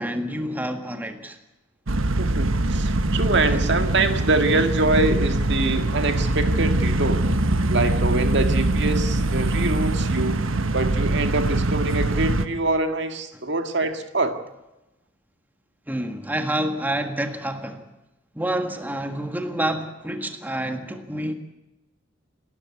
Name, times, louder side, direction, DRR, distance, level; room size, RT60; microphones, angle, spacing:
voice 1, 0.0-1.4 3.5-3.6 15.9-17.8 18.3-21.3, right 1 dB, 10° right, 1.7 m, -28 dB
sound 1, 1.9-12.5, right 2 dB, 85° right, 1.3 m, -23 dB
voice 2, 2.2-7.2 7.7-10.4 10.7-14.4, right 2 dB, 60° right, 1.9 m, -24 dB
28.5 x 13.5 x 8.5 m
head